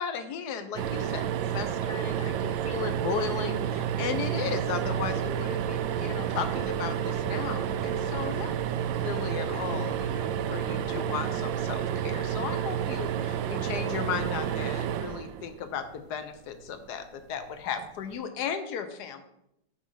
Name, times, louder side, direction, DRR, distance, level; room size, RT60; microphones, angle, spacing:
voice 1, 0.0-8.5 9.0-19.2, left 7 dB, 65° left, 9 dB, 1.2 m, -35 dB
sound 1, 0.8-16.0 17.7-17.9 18.2-18.3, right 9 dB, 80° right, 1.2 m, -30 dB
sound 2, 3.2-11.1, left 8 dB, 85° left, 1.4 m, -47 dB
7.4 x 4.7 x 5.5 m, 0.81 s
omnidirectional pair, 2.2 m